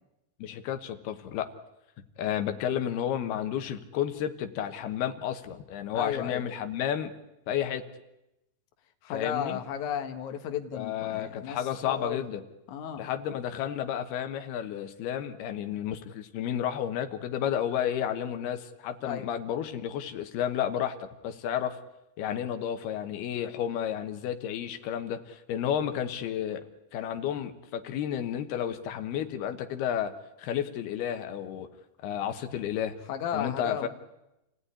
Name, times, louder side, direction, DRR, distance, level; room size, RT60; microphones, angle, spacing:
voice 1, 0.4-1.5 2.2-7.1 7.5-7.9 9.1-9.6 10.7-12.4 13.0-21.8 22.2-26.6 26.9-30.1 30.4-31.7 32.0-32.9 33.3-33.9, left 9 dB, 85° left, 7 dB, 3.2 m, -32 dB
voice 2, 5.9-6.4 9.0-11.6 11.8-12.2 12.7-13.1 19.0-19.3 33.1-33.9, left 9 dB, 60° left, 6 dB, 2.6 m, -33 dB
28.5 x 17.0 x 9.9 m, 0.91 s
omnidirectional pair, 4.4 m